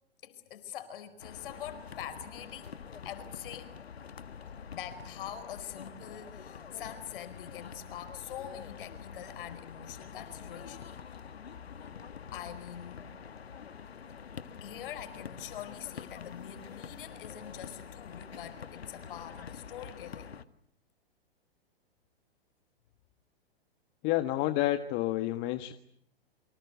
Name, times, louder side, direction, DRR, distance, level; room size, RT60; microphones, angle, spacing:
voice 1, 0.2-3.7 4.7-10.9 12.3-13.1 14.6-20.3, left 10 dB, 60° left, 12 dB, 4.8 m, -44 dB
sound 1, 1.2-20.4, left 7 dB, 80° left, 1.7 m, -46 dB
voice 2, 24.0-25.7, left 15 dB, 35° left, 9 dB, 1.6 m, -29 dB
28.5 x 25.0 x 8.1 m, 0.64 s
hypercardioid pair, 115°, 31 cm